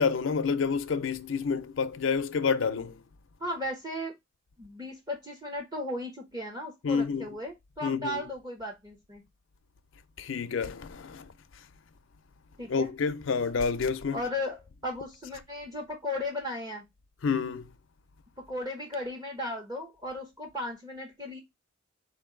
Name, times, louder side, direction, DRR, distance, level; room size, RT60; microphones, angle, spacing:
voice 1, 0.0-3.0 6.8-7.3 7.8-8.3 10.2-11.7 12.7-14.2 17.2-17.7, left 5 dB, 75° left, 0.5 m, -29 dB
voice 2, 3.4-4.1 4.6-9.2 12.6-12.9 14.1-16.8 18.4-21.4, left 1 dB, 20° right, 0.9 m, -36 dB
4.5 x 2.6 x 3.7 m
head